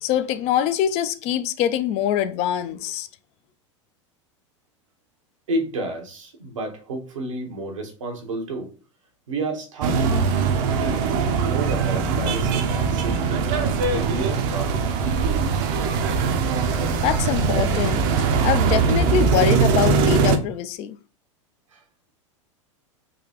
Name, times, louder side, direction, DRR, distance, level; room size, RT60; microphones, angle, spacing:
voice 1, 0.0-3.1 16.8-18.1 18.4-21.0, left 10 dB, 40° left, 0.4 m, -24 dB
voice 2, 5.5-8.7 9.3-10.2 10.6-13.5 13.9-14.9 21.7-21.8, right 2 dB, 80° right, 1.1 m, -31 dB
sound 1, 9.8-20.4, right 5 dB, 50° right, 0.6 m, -21 dB
3.9 x 2.3 x 2.9 m
hypercardioid pair, 95°, 16 cm